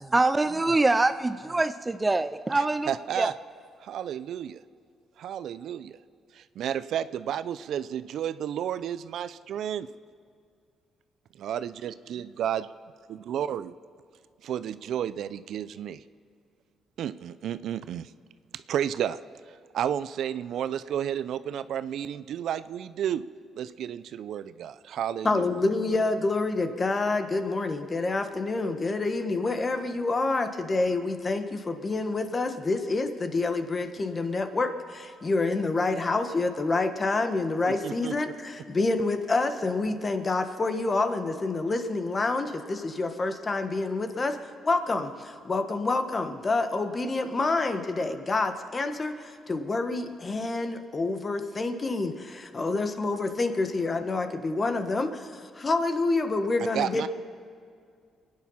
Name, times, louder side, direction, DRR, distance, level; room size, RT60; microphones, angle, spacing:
voice 1, 0.1-2.9 3.2-3.3, right 2 dB, 20° right, 12 dB, 0.5 m, -24 dB
voice 2, 2.5-3.3 3.8-4.6 5.2-6.0 6.3-9.9 11.4-12.7 13.1-13.7 14.4-16.0 17.0-18.1 18.5-19.2 19.5-23.2 23.6-25.4 37.8-38.3 56.7-57.1, right 9 dB, 70° right, 14 dB, 0.5 m, -32 dB
voice 3, 25.2-57.1, left 3 dB, 30° left, 8 dB, 1.3 m, -28 dB
24.0 x 9.8 x 5.7 m, 2.3 s
cardioid pair, 90°, 0 cm